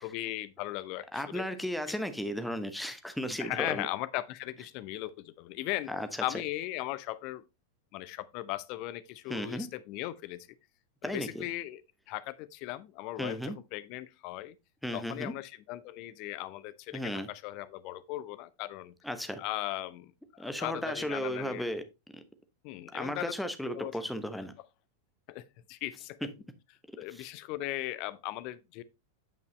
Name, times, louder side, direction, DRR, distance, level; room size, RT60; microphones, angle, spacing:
voice 1, 0.0-1.4 3.4-5.9 6.2-7.4 7.9-10.5 11.0-11.8 12.1-14.6 14.9-18.9 19.4-21.7 22.6-23.3 23.7-23.9 25.3-26.2 27.0-28.8, left 16 dB, 45° left, 0.6 m, -38 dB
voice 2, 1.1-3.9 5.9-6.1 9.3-9.7 11.0-11.5 13.2-13.6 14.8-15.3 16.9-17.3 19.0-19.4 20.4-21.9 22.9-24.5 26.2-26.3 27.1-27.3, equal, ahead, 0.9 m, -35 dB
9.1 x 5.4 x 3.1 m
figure-of-eight pair, 90°, 0 cm